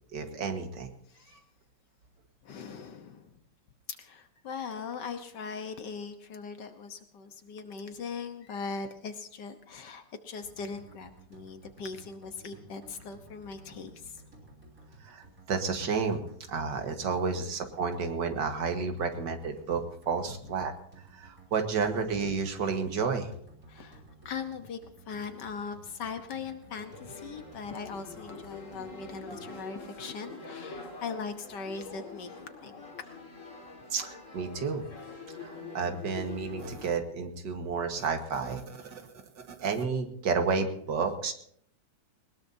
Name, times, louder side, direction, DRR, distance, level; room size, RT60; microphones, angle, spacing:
voice 1, 0.1-0.9 1.3-1.4 15.0-16.2 16.5-20.7 21.1-23.3 33.9-34.8 35.4-41.3, right 5 dB, 70° right, 6 dB, 2.1 m, -31 dB
voice 2, 1.1-1.4 2.4-3.4 3.9-14.2 17.0-17.1 18.9-19.1 23.7-32.8, left 5 dB, 65° left, 8 dB, 1.7 m, -40 dB
sound 1, 10.4-29.6, right 2 dB, 45° right, 3.9 m, -54 dB
sound 2, 26.8-36.9, left 3 dB, 40° left, 2.3 m, -45 dB
20.5 x 19.5 x 2.7 m, 0.66 s
omnidirectional pair, 2.0 m